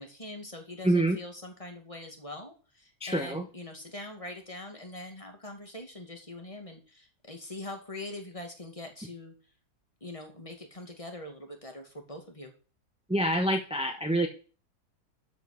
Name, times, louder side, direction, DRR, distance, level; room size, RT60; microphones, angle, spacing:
voice 1, 0.0-9.3 10.0-12.5, left 2 dB, 20° left, 3 dB, 2.2 m, -43 dB
voice 2, 0.8-1.2 3.0-3.5 13.1-14.3, right 1 dB, 5° right, 3 dB, 1.0 m, -26 dB
12.5 x 5.5 x 6.5 m, 0.37 s
omnidirectional pair, 1.7 m